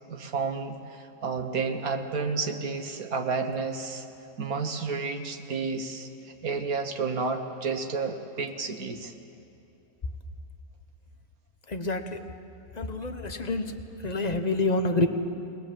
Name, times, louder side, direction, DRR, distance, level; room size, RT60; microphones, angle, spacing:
voice 1, 0.1-4.1 4.4-6.1 6.4-9.1, right 4 dB, 65° right, 5 dB, 1.6 m, -31 dB
voice 2, 11.7-12.2 12.8-13.8 14.0-15.1, left 2 dB, 30° left, 7 dB, 0.9 m, -27 dB
22.0 x 20.5 x 7.7 m, 2.8 s
omnidirectional pair, 1.7 m